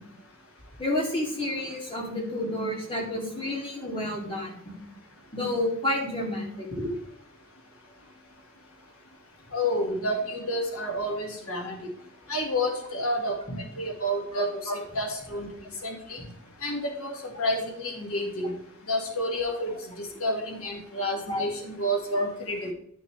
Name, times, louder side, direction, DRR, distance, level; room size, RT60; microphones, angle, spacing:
voice 1, 0.8-4.7 5.3-6.7 13.5-13.6 14.3-14.7 16.2-16.3 21.3-21.4 22.1-22.3, left 1 dB, 25° left, -2 dB, 2.7 m, -30 dB
voice 2, 9.5-11.9 12.3-15.5 15.8-16.2 16.6-18.5 18.9-22.7, equal, 70° left, 2 dB, 1.9 m, -30 dB
11.0 x 6.2 x 3.3 m, 0.69 s
head